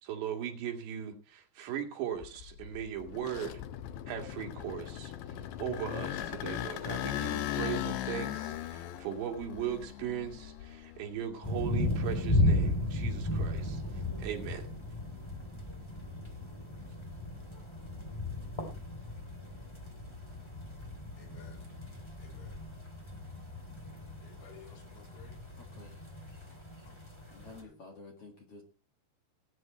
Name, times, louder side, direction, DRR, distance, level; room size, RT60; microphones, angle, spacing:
voice 1, 0.0-3.6 4.1-5.1 5.6-14.7, right 9 dB, 85° right, 4.3 m, -38 dB
sound 1, 2.2-11.2 11.7-13.6, left 12 dB, 90° left, 3.2 m, -38 dB
sound 2, 11.4-27.6, left 1 dB, 10° left, 1.7 m, -35 dB
voice 2, 21.2-21.6 22.2-22.6 24.2-25.4 26.9-27.0, left 6 dB, 65° left, 4.4 m, -55 dB
voice 3, 25.6-25.9 27.3-28.6, left 3 dB, 45° left, 2.3 m, -51 dB
19.0 x 9.0 x 4.3 m
omnidirectional pair, 4.9 m